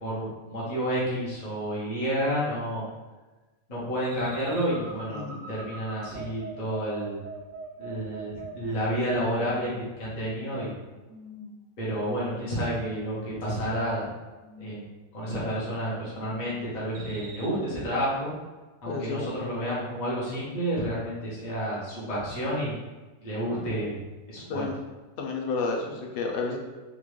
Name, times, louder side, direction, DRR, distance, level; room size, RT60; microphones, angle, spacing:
voice 1, 0.0-2.8 3.7-7.2 7.8-10.7 11.8-14.1 14.6-18.3 18.8-22.7 23.2-24.0 24.3-24.7, equal, 35° left, -7 dB, 1.0 m, -30 dB
sound 1, 4.0-9.0 9.3-9.8 10.2-10.7 11.1-11.5 11.9-12.4 12.7-13.3 13.6-14.1 14.4-14.9 15.2-15.8 16.1-16.6 16.9-17.5, right 1 dB, 65° right, 0.9 m, -43 dB
voice 2, 5.1-5.4 18.9-19.2 23.5-23.7 24.4-24.8 25.2-26.6, left 4 dB, 65° left, 1 dB, 0.5 m, -31 dB
3.6 x 2.5 x 3.2 m, 1.2 s
omnidirectional pair, 1.5 m